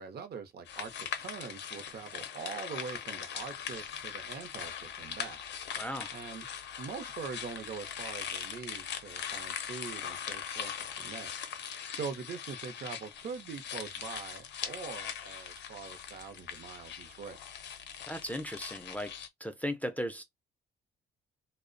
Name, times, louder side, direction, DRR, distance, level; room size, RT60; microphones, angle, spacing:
voice 1, 0.0-5.4 6.1-6.5 6.8-11.4 11.9-17.4, right 6 dB, 55° right, 0.6 m, -43 dB
sound 1, 0.6-19.3, left 8 dB, 60° left, 0.5 m, -41 dB
voice 2, 5.8-6.1 18.1-19.1 19.4-20.2, equal, 10° left, 0.4 m, -36 dB
2.4 x 2.1 x 2.4 m
cardioid pair, 90°, 20 cm